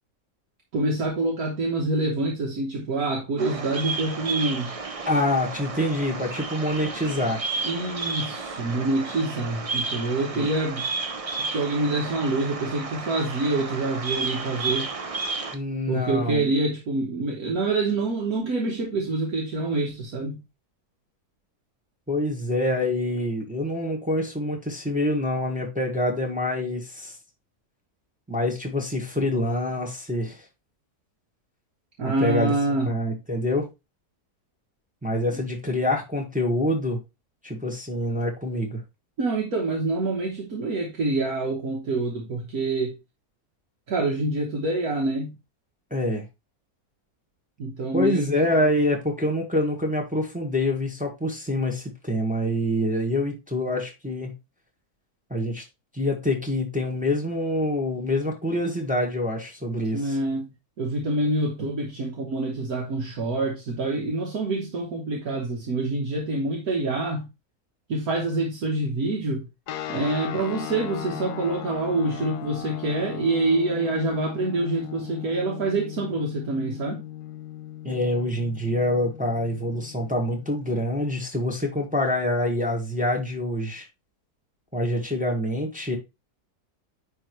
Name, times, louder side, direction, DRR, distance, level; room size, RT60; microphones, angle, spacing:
voice 1, 0.7-4.7 7.6-10.9 11.4-14.9 15.9-20.4 32.0-32.9 39.2-42.9 43.9-45.3 47.6-48.3 59.9-60.5 60.8-67.3 67.9-69.5 69.9-77.0, right 2 dB, 65° right, 1.7 m, -26 dB
Bird vocalization bird call bird song, 3.4-15.5, right 4 dB, 40° right, 0.5 m, -32 dB
voice 2, 5.0-7.4 10.3-10.5 15.5-16.5 22.1-27.1 28.3-30.4 32.0-32.5 32.9-33.7 35.0-37.0 37.4-38.8 45.9-46.2 47.9-54.3 55.3-55.6 55.9-60.1 77.8-83.8 84.7-86.0, left 1 dB, 5° right, 1.3 m, -26 dB
sound 1, 69.7-80.9, left 12 dB, 90° left, 1.2 m, -37 dB
9.7 x 3.5 x 3.1 m
omnidirectional pair, 1.7 m